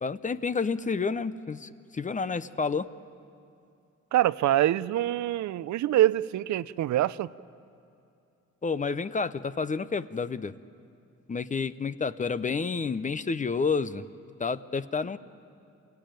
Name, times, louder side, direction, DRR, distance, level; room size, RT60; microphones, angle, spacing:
voice 1, 0.0-2.9 8.6-10.5 11.3-14.0 14.4-15.2, left 4 dB, 25° left, 14 dB, 0.7 m, -30 dB
voice 2, 4.1-7.3, right 13 dB, 70° right, 17 dB, 0.6 m, -25 dB
27.5 x 16.5 x 9.1 m, 2.6 s
cardioid pair, 90°, 30 cm